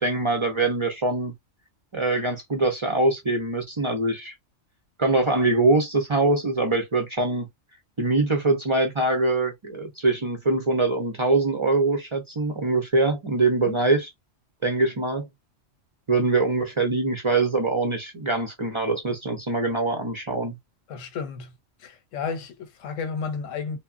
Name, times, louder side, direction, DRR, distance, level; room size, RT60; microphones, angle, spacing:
voice 1, 0.0-1.3 1.9-4.3 5.0-7.5 8.0-14.1 14.6-15.3 16.1-20.5, right 2 dB, 45° right, 0.4 m, -23 dB
voice 2, 20.9-21.5 21.8-23.8, left 5 dB, 80° left, 1.0 m, -32 dB
3.4 x 2.1 x 2.4 m
omnidirectional pair, 1.3 m